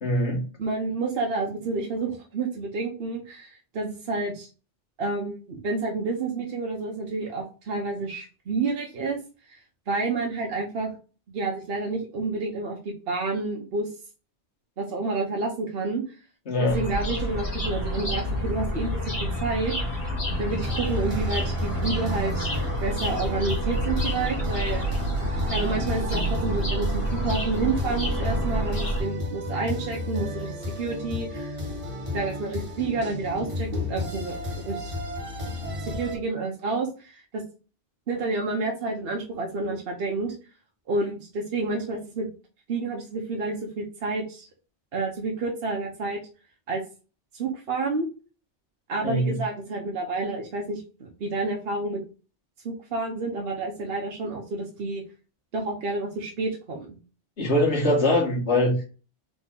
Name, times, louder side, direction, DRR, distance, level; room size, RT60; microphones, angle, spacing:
voice 1, 0.0-0.4 16.5-16.8 49.0-49.4 57.4-58.8, left 1 dB, 75° left, 0 dB, 1.8 m, -22 dB
voice 2, 0.6-4.5 5.0-9.2 9.5-9.6 9.9-10.9 11.3-13.9 14.8-16.0 16.6-19.7 20.4-22.5 22.8-24.8 25.5-31.6 32.1-34.4 34.6-34.9 35.8-37.4 38.1-40.3 40.9-42.3 42.7-44.5 44.9-46.2 46.7-46.8 47.3-48.1 48.9-52.0 52.6-55.0 55.5-57.0, right 3 dB, 60° right, 0 dB, 1.0 m, -29 dB
sound 1, 16.7-29.0, equal, 55° left, 2.1 m, -28 dB
sound 2, 20.5-36.2, left 2 dB, 30° right, 1.1 m, -33 dB
4.1 x 3.0 x 3.7 m, 0.34 s
omnidirectional pair, 1.2 m